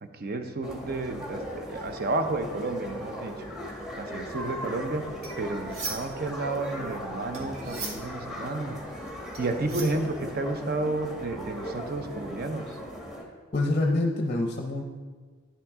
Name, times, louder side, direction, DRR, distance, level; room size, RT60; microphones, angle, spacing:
voice 1, 0.0-3.3 4.0-5.1 5.4-8.8 9.4-12.8, right 2 dB, 50° right, 7 dB, 0.6 m, -31 dB
sound 1, 0.6-13.2, equal, 5° right, 1.0 m, -38 dB
sound 2, 5.2-6.3 6.6-10.6, right 3 dB, 90° right, 1.4 m, -39 dB
voice 2, 13.5-14.8, left 2 dB, 35° left, 2 dB, 0.6 m, -26 dB
9.8 x 5.9 x 3.6 m, 1.5 s
head